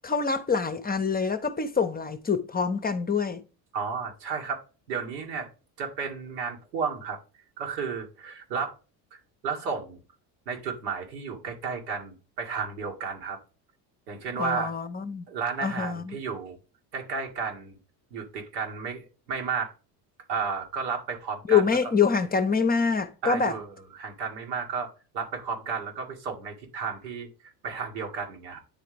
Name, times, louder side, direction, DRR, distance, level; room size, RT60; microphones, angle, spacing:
voice 1, 0.0-3.4 14.4-15.3 15.6-16.2 21.5-23.6, left 5 dB, 20° left, 0.7 m, -25 dB
voice 2, 3.7-4.6 4.9-5.5 5.8-7.2 7.6-8.8 9.1-10.0 10.5-13.4 14.1-14.7 15.3-16.6 16.9-17.8 18.1-19.7 20.3-21.6 23.2-28.6, right 5 dB, 85° right, 2.3 m, -33 dB
9.9 x 3.7 x 3.4 m
supercardioid pair, 90°, 49 cm